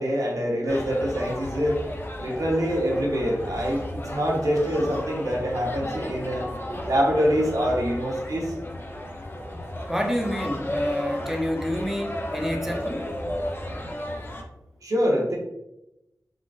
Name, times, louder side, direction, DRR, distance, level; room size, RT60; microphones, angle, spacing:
voice 1, 0.0-1.8 2.2-6.4 6.8-8.5 14.8-15.4, equal, 65° right, -2 dB, 0.8 m, -25 dB
sound 1, 0.7-14.4, left 1 dB, 35° left, 0.5 m, -33 dB
voice 2, 9.9-13.1, equal, 5° right, 2 dB, 0.6 m, -28 dB
3.7 x 2.4 x 2.4 m, 0.90 s
wide cardioid pair, 60°, 6 cm